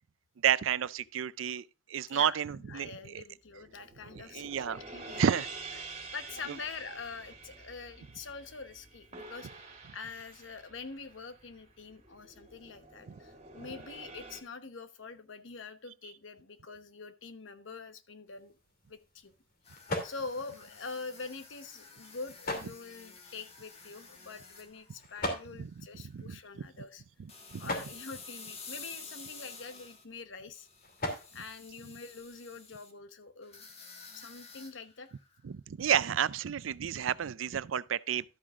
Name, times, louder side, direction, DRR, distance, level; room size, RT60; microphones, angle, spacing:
voice 1, 0.4-3.2 4.3-4.8 5.2-5.5 5.7-5.8 13.1-13.2 25.6-25.7 26.1-26.6 27.2-27.7 35.4-38.2, right 9 dB, 90° right, 0.4 m, -31 dB
voice 2, 2.1-5.4 6.1-9.5 9.9-18.5 18.9-19.3 20.0-27.0 27.6-30.7 31.3-33.6 34.1-35.1, left 4 dB, 70° left, 1.0 m, -45 dB
sound 1, 3.5-14.4, right 3 dB, 35° right, 2.3 m, -48 dB
sound 2, 18.3-32.6, left 1 dB, 50° left, 2.7 m, -43 dB
sound 3, 19.6-25.8 26.1-26.4 27.3-30.0 30.5-32.9 33.4-35.4 35.8-36.0, left 4 dB, 35° left, 1.5 m, -51 dB
12.5 x 8.6 x 2.4 m
head